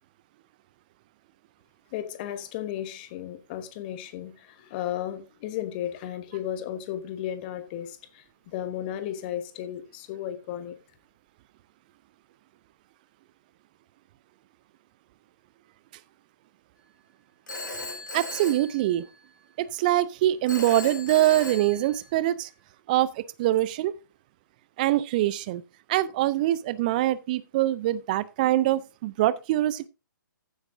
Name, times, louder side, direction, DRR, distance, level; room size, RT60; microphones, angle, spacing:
voice 1, 1.9-10.8, left 11 dB, 25° left, 1.2 m, -34 dB
Telephone, 17.5-19.4 20.5-22.4, left 2 dB, 65° left, 4.0 m, -38 dB
voice 2, 18.1-19.1 19.6-22.5 22.9-23.9 24.8-25.6 25.9-29.9, right 14 dB, 25° right, 0.4 m, -24 dB
15.0 x 8.0 x 2.6 m
figure-of-eight pair, 130°, 11 cm